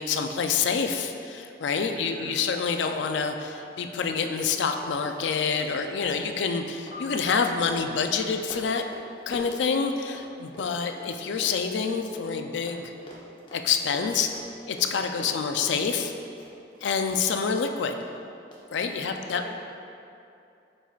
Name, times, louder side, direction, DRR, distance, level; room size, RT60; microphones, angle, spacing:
voice 1, 0.0-8.8 9.3-12.9 13.5-14.3 14.7-16.1 16.8-18.0 18.7-19.4, left 5 dB, 85° left, 6 dB, 0.4 m, -27 dB
Run, 2.0-2.1 2.3-2.5 2.7-10.3 10.5-16.9 17.2-17.7 18.0-18.1 18.5-18.6, equal, 25° left, 0.8 m, -46 dB
voice 2, 2.0-2.3 18.9-19.7, right 1 dB, 75° right, -8 dB, 0.9 m, -44 dB
sound 1, 6.9-9.6, left 3 dB, 60° left, 0.8 m, -47 dB
7.3 x 5.4 x 2.4 m, 2.6 s
head